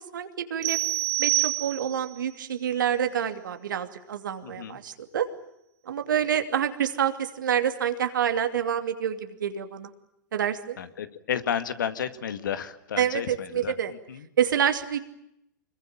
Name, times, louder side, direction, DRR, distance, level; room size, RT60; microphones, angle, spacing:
voice 1, 0.1-0.8 1.2-5.3 5.9-9.9 10.3-10.8 13.0-13.9 14.4-15.0, right 9 dB, 75° right, 7 dB, 2.7 m, -27 dB
sound 1, 0.6-2.2, right 19 dB, 55° right, 1.2 m, -27 dB
voice 2, 4.4-4.8 10.8-14.3, left 8 dB, 75° left, 10 dB, 2.1 m, -32 dB
26.0 x 22.0 x 8.8 m, 0.81 s
hypercardioid pair, 105°, 10 cm